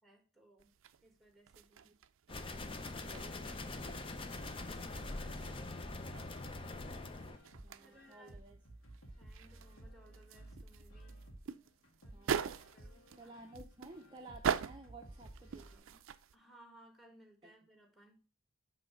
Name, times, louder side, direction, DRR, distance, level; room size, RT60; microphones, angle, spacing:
voice 1, 0.0-0.7 1.0-1.8 4.9-6.6 7.8-8.5 9.2-11.2 12.0-12.3 12.7-13.3 16.3-18.2, right 1 dB, ahead, 3 dB, 1.5 m, -63 dB
sound 1, 0.6-16.3, right 7 dB, 70° right, 0.4 m, -44 dB
sound 2, 2.3-7.4, left 2 dB, 25° left, 0.5 m, -43 dB
voice 2, 2.9-4.0 7.6-8.6 12.1-12.6 13.2-16.0 17.4-17.5, right 2 dB, 25° right, 1 dB, 0.6 m, -55 dB
sound 3, 3.8-15.8, right 1 dB, 75° left, 1.8 m, -55 dB
7.6 x 3.2 x 4.9 m, 0.34 s
head